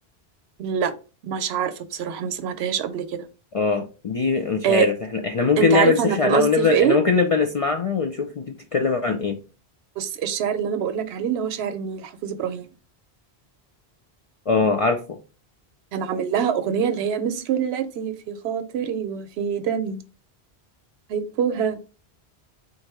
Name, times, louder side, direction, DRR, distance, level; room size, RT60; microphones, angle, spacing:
voice 1, 0.6-0.9 1.2-3.3 4.6-4.9 5.6-7.0 10.0-12.7 15.9-20.0 21.1-21.9, right 7 dB, 80° right, 11 dB, 0.8 m, -25 dB
voice 2, 3.5-9.4 14.5-15.2, left 4 dB, 55° left, 4 dB, 0.4 m, -22 dB
4.0 x 2.5 x 4.5 m, 0.34 s
omnidirectional pair, 1.1 m